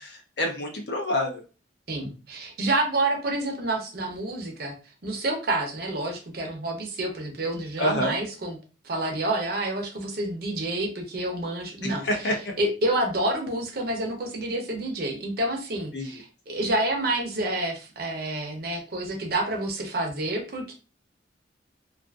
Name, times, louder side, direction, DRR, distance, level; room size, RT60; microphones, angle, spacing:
voice 1, 0.0-1.4 7.8-8.1 11.8-12.5 15.9-16.2, left 1 dB, 65° left, 2 dB, 0.6 m, -28 dB
voice 2, 1.9-4.7 5.0-8.6 8.8-12.0 12.6-20.7, right 1 dB, 55° right, 3 dB, 0.6 m, -28 dB
2.5 x 2.4 x 2.3 m, 0.33 s
head